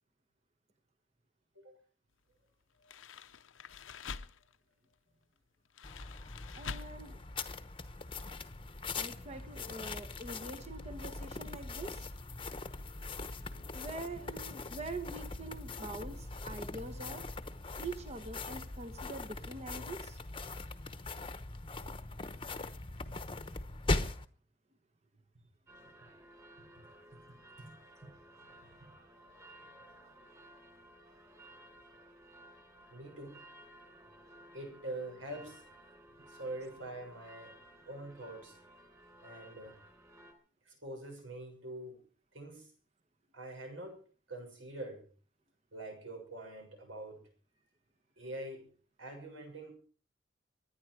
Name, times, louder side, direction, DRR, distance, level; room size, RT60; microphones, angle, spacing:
sound 1, 2.8-4.6 5.7-7.1 7.4-7.6 8.2-8.3 8.5-8.6, left 6 dB, 80° left, 0.8 m, -46 dB
sound 2, 5.8-24.3, left 3 dB, 25° left, 1.0 m, -41 dB
voice 1, 6.6-7.2 8.9-12.1 13.7-17.2 17.8-20.2, right 2 dB, 35° right, 7 dB, 1.2 m, -44 dB
sound 3, 25.7-40.3, right 1 dB, 15° right, 3.6 m, -57 dB
voice 2, 32.9-33.4 34.5-35.6 36.3-37.5 37.9-38.6 39.2-39.8 40.6-42.0 42.3-42.7 43.3-44.0 44.3-45.1 45.7-47.2 48.2-48.7 49.0-49.7, right 1 dB, 80° right, 3 dB, 6.7 m, -45 dB
24.0 x 10.5 x 4.8 m, 0.39 s
head